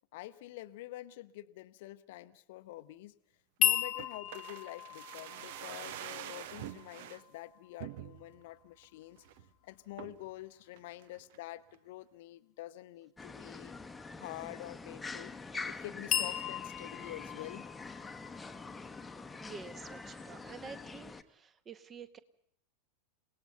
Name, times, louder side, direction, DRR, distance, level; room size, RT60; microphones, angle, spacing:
voice 1, 0.1-3.1 3.6-9.2 9.6-13.7 14.2-15.3 15.7-17.6, left 16 dB, 55° left, 13 dB, 0.8 m, -47 dB
sound 1, 3.6-7.7 16.1-19.9, left 11 dB, 35° left, 1.1 m, -36 dB
sound 2, 4.0-7.2 7.8-8.4 8.8-8.9 9.2-9.5 10.0-10.3 10.8-11.5 11.7-11.8, right 12 dB, 55° right, 0.8 m, -46 dB
sound 3, 13.2-21.2, left 4 dB, 10° left, 1.1 m, -45 dB
voice 2, 19.4-22.2, right 5 dB, 25° right, 13 dB, 1.4 m, -49 dB
28.5 x 18.5 x 5.8 m, 0.71 s
figure-of-eight pair, 85°, 0 cm